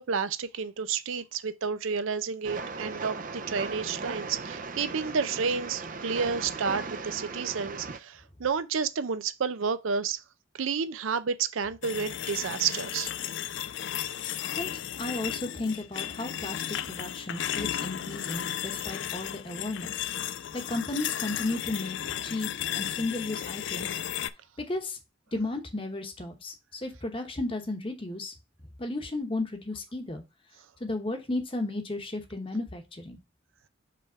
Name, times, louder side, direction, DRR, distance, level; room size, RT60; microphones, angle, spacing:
voice 1, 0.0-10.2 10.6-13.1, right 5 dB, 85° right, 0.5 m, -30 dB
Train, 2.4-8.0, right 4 dB, 40° right, 0.5 m, -38 dB
sound 1, 11.8-24.3, left 10 dB, 65° left, 0.4 m, -34 dB
voice 2, 14.5-24.0 24.6-25.0 25.3-28.3 28.8-30.2 30.8-33.2, left 2 dB, 25° left, 1.0 m, -34 dB
5.1 x 3.5 x 5.5 m
head